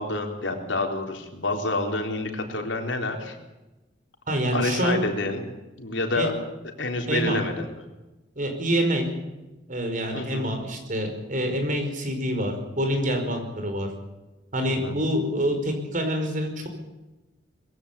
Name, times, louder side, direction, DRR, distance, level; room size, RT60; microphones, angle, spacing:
voice 1, 0.0-3.4 4.5-5.4 5.8-6.3 6.8-7.7 10.1-10.5 14.7-14.9, left 2 dB, 80° left, 3 dB, 3.9 m, -28 dB
voice 2, 4.3-5.0 6.1-6.3 7.1-7.4 8.4-9.1 9.7-13.9 14.5-16.7, equal, 45° right, 5 dB, 5.1 m, -26 dB
21.5 x 16.0 x 8.4 m, 1.1 s
head